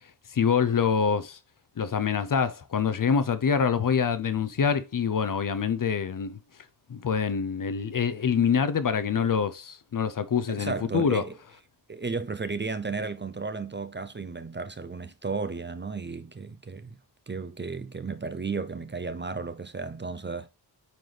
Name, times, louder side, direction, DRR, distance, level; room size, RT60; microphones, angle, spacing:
voice 1, 0.3-1.4 1.8-6.4 6.9-11.2, left 6 dB, 50° left, 0.6 m, -25 dB
voice 2, 10.5-11.3 11.9-17.0 17.3-20.5, right 4 dB, 25° right, 0.5 m, -34 dB
8.8 x 4.0 x 3.2 m
wide cardioid pair, 115°, 41 cm